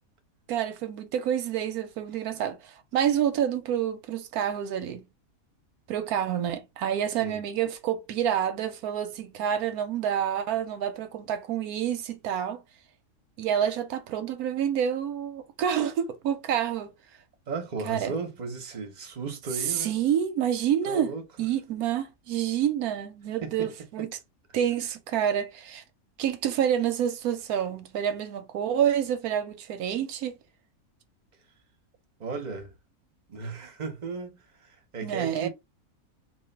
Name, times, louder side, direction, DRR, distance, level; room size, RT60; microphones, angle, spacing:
voice 1, 0.5-5.0 5.9-12.6 13.4-16.9 17.8-18.2 19.6-24.1 24.5-25.8 26.2-30.4 35.0-35.5, right 9 dB, 85° right, 1.2 m, -28 dB
voice 2, 17.5-19.9 20.9-21.2 23.4-23.5 32.2-32.7 33.3-35.5, right 4 dB, 35° right, 1.0 m, -35 dB
3.1 x 2.5 x 4.3 m
omnidirectional pair, 1.5 m